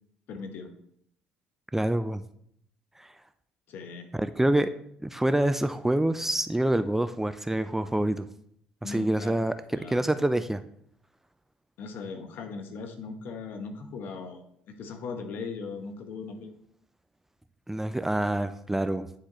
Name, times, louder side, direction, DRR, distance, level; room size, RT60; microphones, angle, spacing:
voice 1, 0.3-0.7 3.7-4.1 8.8-9.4 9.7-10.0 11.8-16.5, left 4 dB, 60° left, 6 dB, 1.0 m, -39 dB
voice 2, 1.7-2.2 3.0-3.1 4.1-4.7 5.0-8.3 8.8-10.6 17.7-19.1, right 1 dB, 10° right, 11 dB, 0.4 m, -26 dB
10.0 x 3.9 x 3.0 m, 0.69 s
hypercardioid pair, 60°, 4 cm